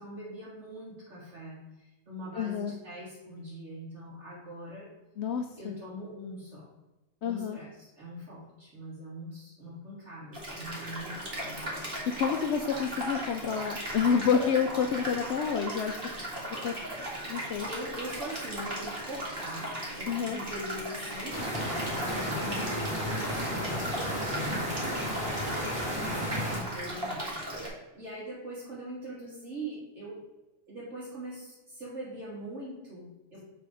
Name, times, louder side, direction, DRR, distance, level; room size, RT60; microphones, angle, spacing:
voice 1, 0.0-4.9 5.6-6.7 7.2-7.7 8.0-11.7 17.7-25.3 26.0-27.6 27.9-30.2 30.7-33.4, right 1 dB, 65° right, -9 dB, 2.3 m, -42 dB
voice 2, 2.3-2.7 5.2-5.7 7.2-7.6 12.2-16.0 16.6-16.7 17.3-17.7 20.1-20.4 25.9-26.2, left 7 dB, 65° left, 5 dB, 0.8 m, -29 dB
sound 1, 10.3-27.7, right 1 dB, 45° right, 2.2 m, -37 dB
sound 2, 21.3-26.6, equal, 5° right, 2.5 m, -32 dB
7.6 x 4.0 x 4.7 m, 1.0 s
omnidirectional pair, 1.4 m